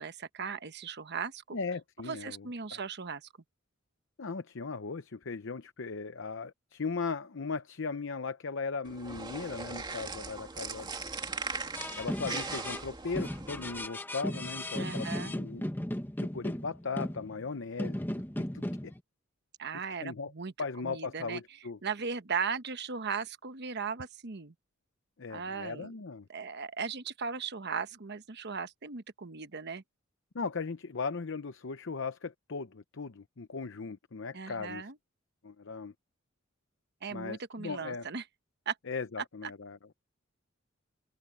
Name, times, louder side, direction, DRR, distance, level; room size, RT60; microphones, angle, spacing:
voice 1, 0.0-1.6 2.0-3.3 14.8-15.3 19.6-20.5 20.8-21.4 21.8-24.5 25.3-25.9 26.3-29.8 34.3-35.0 37.0-38.2 38.7-38.8, right 5 dB, 55° right, 1.1 m, -37 dB
voice 2, 1.5-2.8 4.2-10.9 12.0-15.6 16.2-18.9 20.0-20.3 20.6-21.8 25.2-26.3 30.3-34.8 35.4-35.9 37.1-38.1 38.9-39.9, left 4 dB, 65° left, 0.8 m, -38 dB
sound 1, 8.8-13.9, right 4 dB, 20° right, 2.4 m, -39 dB
sound 2, 11.7-12.8 13.2-17.5 17.8-19.0, left 1 dB, 10° left, 1.4 m, -36 dB
head